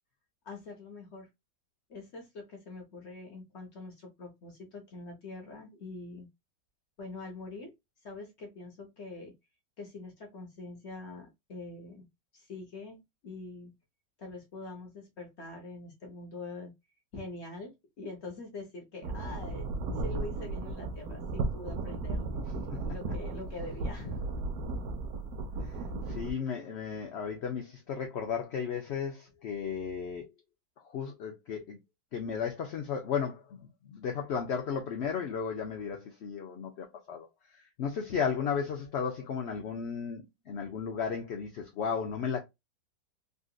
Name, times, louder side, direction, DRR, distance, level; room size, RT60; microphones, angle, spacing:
voice 1, 0.4-1.3 1.9-6.3 7.0-7.7 8.0-9.3 9.8-12.1 12.3-13.7 14.2-16.7 17.1-22.3 22.9-24.4, left 2 dB, 45° left, 1.1 m, -44 dB
sound 1, 19.0-26.3, right 3 dB, 70° right, 1.1 m, -35 dB
voice 2, 26.1-30.3 30.9-31.8 32.1-33.4 33.9-37.3 37.8-42.4, left 6 dB, 70° left, 0.6 m, -34 dB
3.8 x 2.5 x 2.3 m
omnidirectional pair, 1.8 m